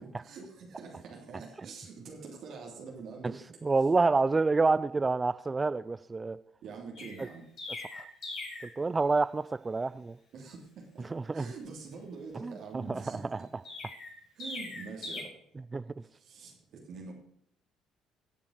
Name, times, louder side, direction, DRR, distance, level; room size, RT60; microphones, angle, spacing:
voice 1, 0.0-3.4 6.6-7.4 10.3-13.4 14.3-15.3 16.1-17.1, right 4 dB, 60° right, -1 dB, 3.2 m, -45 dB
voice 2, 3.6-6.4 7.9-8.0 8.8-10.2 11.1-11.5 12.4-13.4 15.7-15.8, right 3 dB, 25° right, 15 dB, 0.5 m, -28 dB
Chirp tweet, 6.9-8.7 13.6-15.2, left 3 dB, 50° left, 6.1 m, -41 dB
15.0 x 7.0 x 6.6 m, 0.70 s
hypercardioid pair, 55°, 0 cm